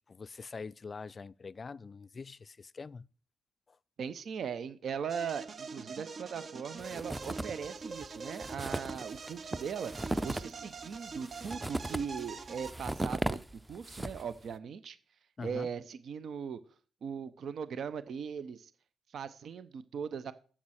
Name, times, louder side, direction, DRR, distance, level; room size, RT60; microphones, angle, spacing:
voice 1, 0.1-3.1 15.4-15.7, left 4 dB, 40° left, 0.4 m, -44 dB
voice 2, 4.0-13.4 13.7-15.0 15.4-16.6 17.0-18.7 19.1-20.3, right 7 dB, 65° right, 0.7 m, -39 dB
sound 1, 5.1-12.7, right 4 dB, 50° right, 0.9 m, -44 dB
sound 2, 6.8-7.7 8.0-8.1 8.3-14.4, right 1 dB, 15° right, 0.6 m, -37 dB
7.3 x 7.1 x 6.4 m
cardioid pair, 75°, 0 cm